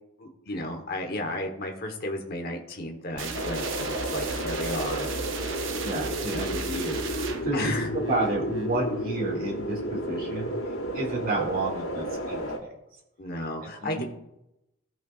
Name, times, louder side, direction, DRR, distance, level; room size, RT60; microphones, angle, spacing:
voice 1, 0.2-5.1 7.5-7.9 13.2-14.0, left 1 dB, 45° left, 3 dB, 1.1 m, -33 dB
sound 1, 3.2-8.8, right 4 dB, 60° right, 0.7 m, -35 dB
sound 2, 3.3-12.6, equal, 80° left, 3.1 m, -32 dB
voice 2, 5.8-10.5 10.9-12.5 13.6-14.0, right 2 dB, 45° right, -2 dB, 2.1 m, -31 dB
15.5 x 5.6 x 2.4 m, 0.88 s
head